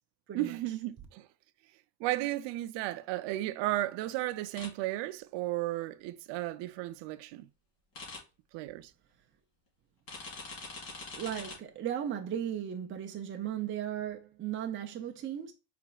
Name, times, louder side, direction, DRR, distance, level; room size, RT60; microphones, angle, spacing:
voice 1, 0.3-1.3 2.0-7.5 8.5-8.9, right 16 dB, 75° right, 0.6 m, -34 dB
sound 1, 4.6-4.7 7.9-8.2 10.1-11.6, left 3 dB, 55° left, 2.3 m, -43 dB
voice 2, 11.1-15.5, right 10 dB, 30° right, 0.5 m, -36 dB
4.9 x 3.3 x 2.3 m
cardioid pair, 130°, 43 cm